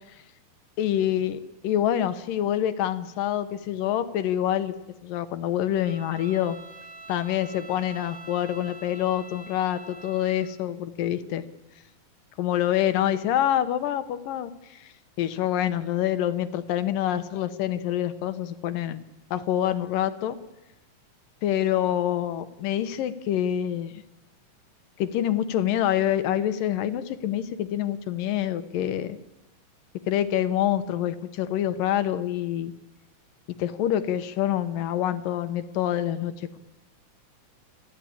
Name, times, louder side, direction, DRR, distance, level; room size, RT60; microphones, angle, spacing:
voice 1, 0.8-4.8 5.0-6.6 7.1-11.4 12.4-14.9 15.2-19.0 19.3-20.4 21.4-24.0 25.0-29.2 30.1-32.7 33.6-36.6, left 11 dB, 85° left, 11 dB, 2.8 m, -26 dB
Bowed string instrument, 5.7-10.6, right 3 dB, 35° right, 3.4 m, -45 dB
28.0 x 14.5 x 8.7 m, 0.98 s
omnidirectional pair, 3.8 m